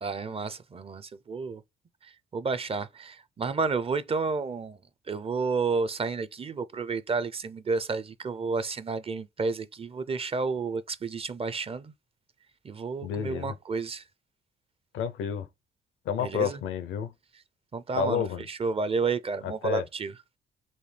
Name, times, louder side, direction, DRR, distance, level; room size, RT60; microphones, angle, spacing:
voice 1, 0.0-1.6 2.3-4.8 5.1-11.9 12.6-14.0 16.2-16.6 17.7-20.4, right 4 dB, 30° right, 0.5 m, -31 dB
voice 2, 13.0-13.6 14.9-15.5 16.1-17.1 18.0-18.4 19.4-19.9, left 7 dB, 80° left, 0.6 m, -30 dB
4.2 x 2.7 x 3.2 m
cardioid pair, 90°, 20 cm